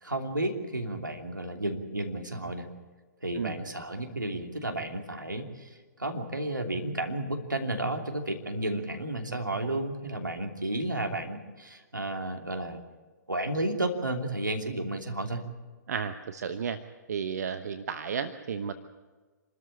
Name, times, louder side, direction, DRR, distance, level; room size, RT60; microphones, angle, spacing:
voice 1, 0.0-2.7 3.2-12.8 13.3-15.4, right 1 dB, 85° right, 4 dB, 3.0 m, -32 dB
voice 2, 15.9-16.8 17.1-18.7, right 6 dB, 60° right, 10 dB, 1.1 m, -33 dB
27.0 x 13.5 x 8.6 m, 1.4 s
figure-of-eight pair, 120°, 10 cm